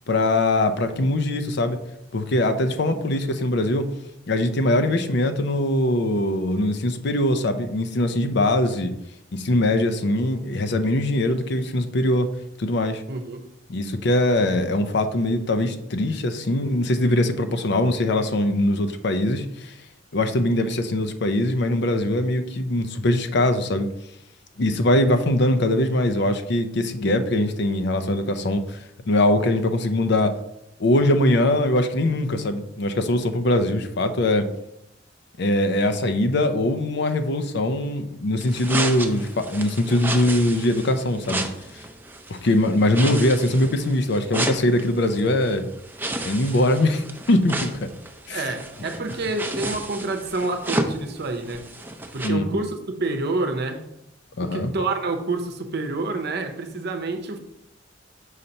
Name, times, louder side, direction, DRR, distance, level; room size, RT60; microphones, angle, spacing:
voice 1, 0.1-1.8 2.1-3.9 4.3-8.9 9.3-12.3 12.6-13.0 13.7-19.7 20.1-23.9 24.6-28.8 29.1-30.3 30.8-34.5 35.4-41.4 42.3-45.6 46.2-47.7 48.3-48.4 52.2-52.5 54.4-54.7, left 1 dB, 65° left, 0.6 m, -22 dB
voice 2, 13.1-13.5 48.3-51.7 52.1-53.8 54.4-57.4, right 3 dB, 60° right, 0.8 m, -28 dB
sound 1, 38.4-52.3, right 2 dB, 10° right, 0.5 m, -32 dB
6.5 x 2.9 x 5.3 m
head